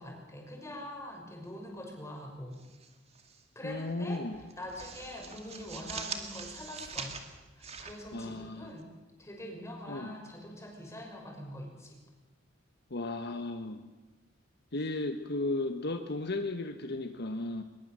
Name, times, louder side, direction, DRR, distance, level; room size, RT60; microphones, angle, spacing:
voice 1, 0.0-2.6 3.5-7.2 7.6-8.9 9.2-12.0, left 1 dB, 15° left, 1 dB, 6.0 m, -44 dB
sound 1, 2.5-3.4 3.7-3.9 4.3-8.8, right 5 dB, 35° right, 2.4 m, -43 dB
voice 2, 3.6-4.4 8.1-8.8 9.9-10.2 12.9-13.8 14.7-17.6, left 2 dB, 55° left, 7 dB, 1.3 m, -35 dB
22.0 x 22.0 x 7.5 m, 1.2 s
head